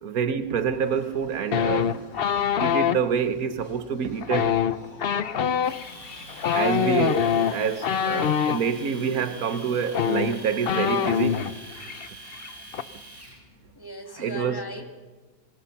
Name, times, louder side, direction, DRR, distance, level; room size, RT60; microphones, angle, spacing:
voice 1, 0.0-1.9 2.6-4.6 6.5-11.4 14.2-14.6, right 7 dB, 55° right, 1.5 m, -27 dB
sound 1, 0.6-13.9, left 1 dB, 40° left, 2.5 m, -49 dB
sound 2, 1.5-3.0 4.2-8.6 9.5-9.6 9.9-11.5 11.8-12.1 12.3-12.8, left 8 dB, 85° left, 0.5 m, -24 dB
Domestic sounds home sounds, 5.6-13.4, right 1 dB, 10° right, 5.1 m, -44 dB
voice 2, 6.6-7.2 11.8-12.0 13.8-14.9, equal, 10° left, 2.0 m, -40 dB
24.5 x 18.5 x 5.8 m
omnidirectional pair, 1.9 m